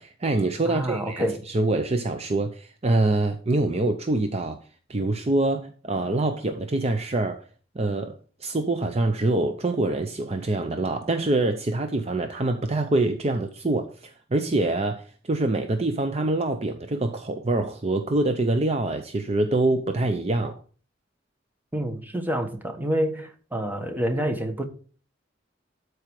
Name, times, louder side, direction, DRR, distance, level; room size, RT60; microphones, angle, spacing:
voice 1, 0.0-4.6 4.9-7.4 7.7-20.6, right 2 dB, 35° right, 0.7 m, -25 dB
voice 2, 0.6-1.4 21.7-24.6, right 1 dB, 10° right, 1.2 m, -27 dB
12.5 x 4.8 x 4.7 m
head